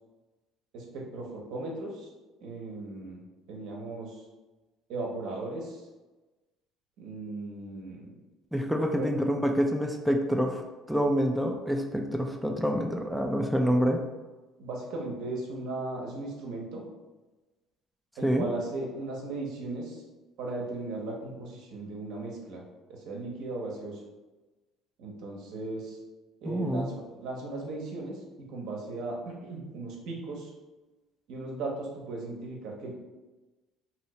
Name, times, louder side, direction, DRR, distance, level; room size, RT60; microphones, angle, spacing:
voice 1, 0.7-2.1 2.4-3.2 3.5-4.2 4.9-5.8 7.0-8.1 8.9-9.1 14.6-16.8 18.2-20.0 20.4-22.6 22.9-24.0 25.0-26.0 26.4-28.2 28.5-30.5 31.3-33.0, right 2 dB, 75° right, -2 dB, 0.8 m, -37 dB
voice 2, 8.5-14.0 18.2-18.5 26.4-26.9, equal, ahead, 2 dB, 0.4 m, -27 dB
2.8 x 2.6 x 3.1 m, 1.2 s
supercardioid pair, 75°, 0 cm